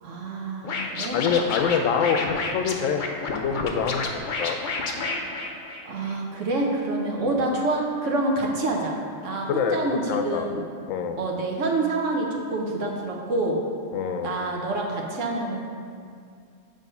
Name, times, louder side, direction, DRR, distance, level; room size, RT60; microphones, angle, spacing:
voice 1, 0.0-1.2 5.8-9.0 9.2-10.6 11.2-13.6 14.2-15.6, right 2 dB, 75° right, 0 dB, 1.3 m, -27 dB
Scratching (performance technique), 0.6-6.1, left 3 dB, 50° left, 0.7 m, -30 dB
voice 2, 1.1-4.6 7.2-7.4 9.5-10.5 10.9-11.2 13.9-14.3, left 7 dB, 90° left, 7 dB, 1.0 m, -26 dB
8.6 x 3.5 x 5.4 m, 2.3 s
omnidirectional pair, 1.3 m